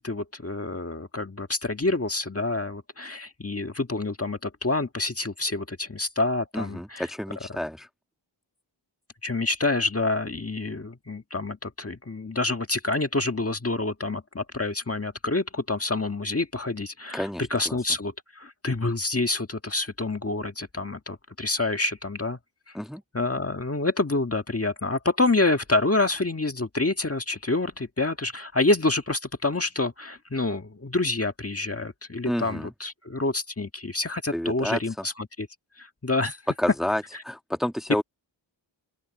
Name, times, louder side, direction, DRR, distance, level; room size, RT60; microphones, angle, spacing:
voice 1, 0.0-7.0 9.2-22.4 23.1-35.5 35.8-36.4, left 2 dB, 30° left, 1.7 m, -27 dB
voice 2, 6.5-7.9 17.1-17.8 22.7-23.0 32.3-32.7 34.3-35.0 36.6-38.0, left 1 dB, ahead, 1.5 m, -30 dB
open air
wide cardioid pair, 80°, 46 cm